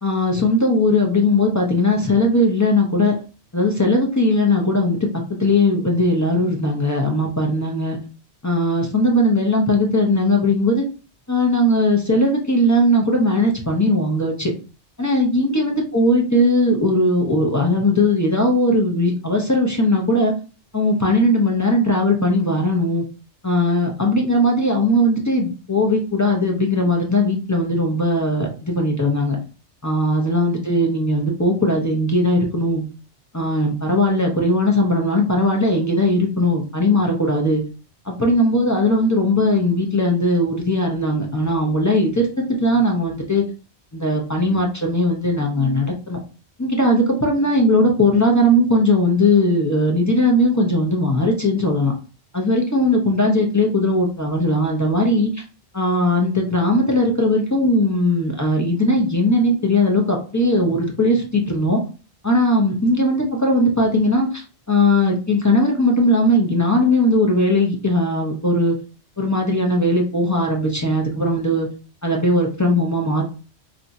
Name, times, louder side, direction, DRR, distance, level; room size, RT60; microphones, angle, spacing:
voice 1, 0.0-3.1 3.5-8.0 8.4-10.8 11.3-14.5 15.0-20.3 20.7-23.0 23.4-29.4 29.8-32.8 33.3-37.6 38.0-43.4 43.9-46.2 46.6-51.9 52.3-55.4 55.7-61.8 62.2-68.7 69.2-71.7 72.0-73.2, left 1 dB, 25° left, 0 dB, 0.4 m, -19 dB
2.5 x 2.3 x 4.0 m, 0.35 s
omnidirectional pair, 1.2 m